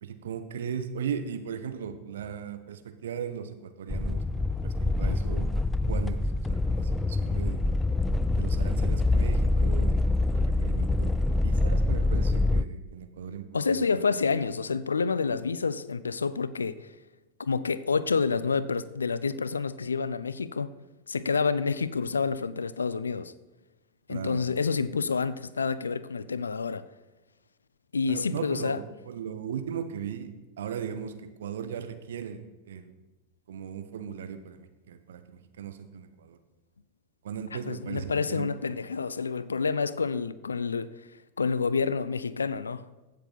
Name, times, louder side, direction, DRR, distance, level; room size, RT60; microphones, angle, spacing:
voice 1, 0.0-4.7 5.0-5.5 5.9-6.2 6.5-7.6 8.4-13.9 24.1-24.4 28.1-31.1 31.4-32.9 33.5-36.4 37.2-38.5, right 8 dB, 60° right, 1.0 m, -37 dB
sound 1, 3.9-12.6, left 2 dB, 10° left, 0.3 m, -25 dB
voice 2, 13.5-16.9 17.4-20.7 21.1-23.3 24.1-26.8 27.9-28.8 37.5-40.9 41.4-42.8, left 5 dB, 75° left, 0.4 m, -28 dB
15.5 x 6.7 x 4.0 m
figure-of-eight pair, 90°, 0 cm